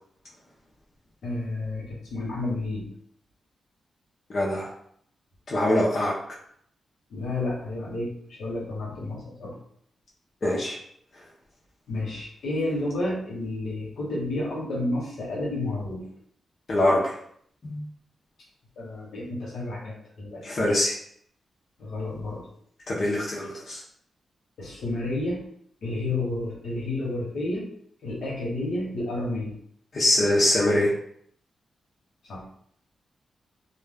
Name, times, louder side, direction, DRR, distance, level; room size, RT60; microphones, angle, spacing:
voice 1, 1.2-2.9 7.1-9.6 11.9-16.1 18.8-20.4 21.8-22.5 24.6-25.4 25.8-27.7 28.0-29.6 32.2-32.5, left 2 dB, 75° left, -3 dB, 1.0 m, -31 dB
voice 2, 4.3-4.7 5.5-6.1 10.4-10.8 16.7-17.1 17.6-17.8 20.4-21.0 22.9-23.8 29.9-30.9, left 1 dB, 50° left, -6 dB, 0.6 m, -23 dB
2.3 x 2.2 x 3.3 m, 0.66 s
cardioid pair, 105°, 0 cm